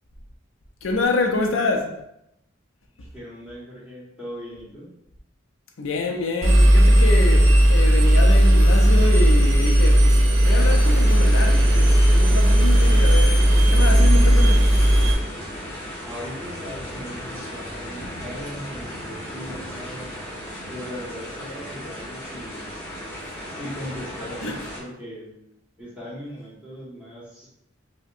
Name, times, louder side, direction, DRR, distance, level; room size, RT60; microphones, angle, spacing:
voice 1, 0.8-2.0 5.8-14.7 24.4-24.6, left 2 dB, 80° left, 0.5 m, -27 dB
voice 2, 3.1-4.9 16.0-20.1 20.7-22.7 23.3-25.4 25.8-27.5, equal, 5° right, 1.2 m, -38 dB
Engine, 6.4-15.1, equal, 75° right, 0.8 m, -15 dB
sound 1, 10.4-24.8, equal, 15° left, 1.0 m, -35 dB
5.3 x 2.1 x 2.5 m
head